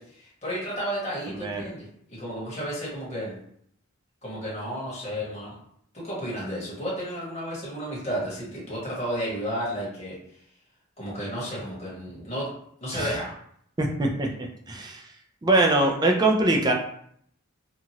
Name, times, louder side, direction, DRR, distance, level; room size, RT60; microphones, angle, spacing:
voice 1, 0.0-3.3 4.2-5.6 5.9-10.2 11.0-12.5 12.8-13.3, equal, 30° left, -6 dB, 1.4 m, -32 dB
voice 2, 1.3-1.6 12.9-13.1 13.8-15.0 15.4-16.7, right 2 dB, 20° right, 2 dB, 0.4 m, -23 dB
2.9 x 2.4 x 2.8 m, 0.67 s
head